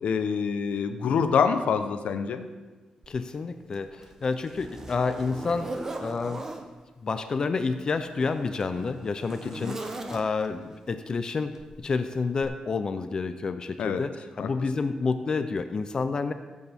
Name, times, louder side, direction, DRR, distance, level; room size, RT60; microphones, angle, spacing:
voice 1, 0.0-2.4 9.4-9.8 13.8-14.0 14.4-14.5, left 6 dB, 80° left, 8 dB, 0.9 m, -26 dB
Zipper (clothing), 3.0-3.2 3.7-6.7 7.6-10.6 11.6-11.8 12.4-12.5, right 2 dB, 25° right, 0.8 m, -39 dB
voice 2, 3.1-5.7 6.0-6.5 7.0-11.5 11.8-16.3, left 4 dB, 35° left, 9 dB, 0.5 m, -29 dB
16.5 x 8.5 x 3.5 m, 1.3 s
wide cardioid pair, 170°, 2 cm